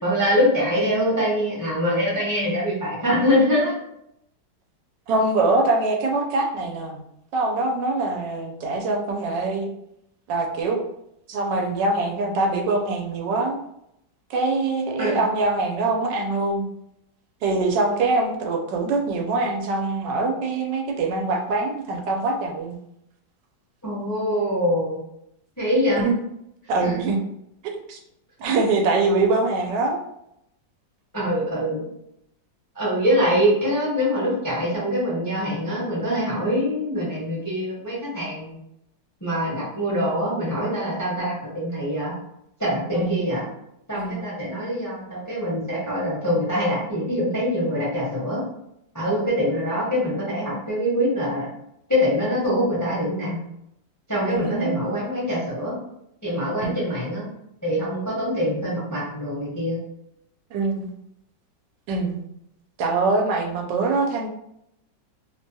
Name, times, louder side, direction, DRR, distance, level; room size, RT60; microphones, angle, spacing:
voice 1, 0.0-3.7 15.0-15.2 23.8-25.0 25.6-26.0 26.8-26.9 31.1-31.8 32.7-38.6 39.2-42.1 42.6-43.4 43.9-48.4 48.9-51.5 51.9-53.5 54.1-55.7 56.2-57.2 57.6-59.8, equal, 20° left, -7 dB, 0.5 m, -24 dB
voice 2, 5.1-7.0 7.3-9.7 10.3-10.8 11.3-13.6 14.3-16.7 17.4-22.8 26.0-26.1 26.7-27.2 27.6-28.0 28.4-30.0 42.9-43.3 43.9-44.3 54.3-54.8 56.6-56.8 60.5-60.9 61.9-62.2 62.8-64.3, right 3 dB, 90° right, 2 dB, 1.3 m, -23 dB
3.1 x 2.2 x 2.7 m, 0.79 s
omnidirectional pair, 1.9 m